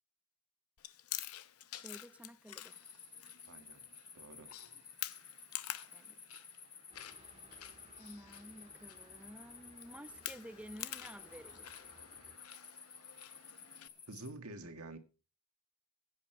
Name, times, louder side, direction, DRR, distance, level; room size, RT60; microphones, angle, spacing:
Chewing mastication, 0.8-13.9, left 13 dB, 75° left, 0.8 m, -49 dB
voice 1, 1.7-2.8 5.9-6.2 8.0-11.8, equal, 5° right, 0.6 m, -52 dB
sound 1, 2.6-14.3, left 5 dB, 25° left, 3.5 m, -55 dB
voice 2, 3.5-3.8 4.1-4.5 14.1-15.0, right 2 dB, 75° right, 1.9 m, -48 dB
sound 2, 6.9-12.4, right 2 dB, 30° right, 2.2 m, -63 dB
15.5 x 8.7 x 4.6 m
head